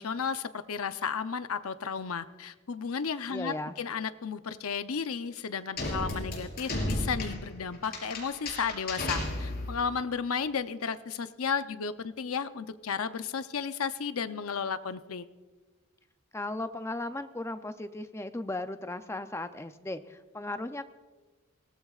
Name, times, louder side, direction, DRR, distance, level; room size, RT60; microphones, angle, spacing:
voice 1, 0.0-15.3, left 6 dB, 80° left, 11 dB, 0.7 m, -33 dB
voice 2, 3.3-3.7 16.3-20.8, left 2 dB, 10° left, 9 dB, 0.5 m, -36 dB
sound 1, 5.8-9.9, left 1 dB, 45° left, 4.8 m, -34 dB
23.0 x 18.0 x 2.4 m, 1.3 s
head